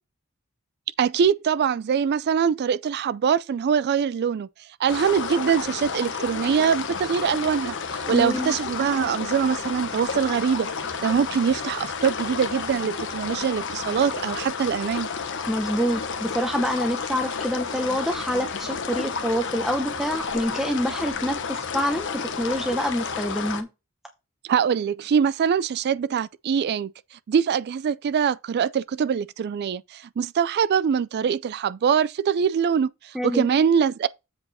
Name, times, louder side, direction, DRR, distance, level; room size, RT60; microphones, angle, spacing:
voice 1, 1.0-4.5 4.8-10.7 11.0-15.1 24.4-26.9 27.3-34.1, right 7 dB, 50° right, 0.3 m, -23 dB
sound 1, 4.9-23.6, left 5 dB, 60° left, 1.1 m, -31 dB
voice 2, 8.1-8.6 15.5-23.7 33.1-33.5, equal, ahead, 0.9 m, -26 dB
7.7 x 4.6 x 4.2 m
head